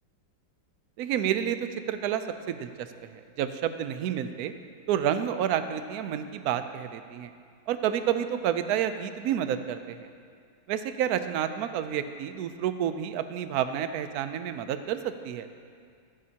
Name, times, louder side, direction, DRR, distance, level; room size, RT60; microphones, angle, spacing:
voice 1, 1.0-1.6 1.9-2.9 3.1-4.5 4.9-7.3 7.7-10.1 10.7-15.5, right 9 dB, 70° right, 10 dB, 0.9 m, -29 dB
14.0 x 14.0 x 2.9 m, 2.2 s
omnidirectional pair, 2.1 m